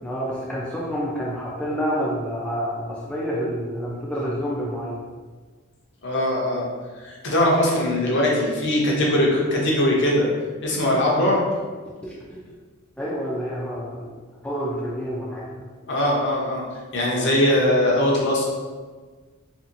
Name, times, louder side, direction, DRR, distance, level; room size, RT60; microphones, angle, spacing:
voice 1, 0.0-5.0 11.1-11.3 12.0-12.4 13.0-14.1 14.4-15.7, equal, 5° left, -6 dB, 0.4 m, -28 dB
voice 2, 6.0-6.6 7.0-10.3 10.6-11.4 15.9-16.6 16.9-18.4, left 1 dB, 55° left, -3 dB, 0.7 m, -21 dB
2.9 x 2.8 x 2.5 m, 1.4 s
head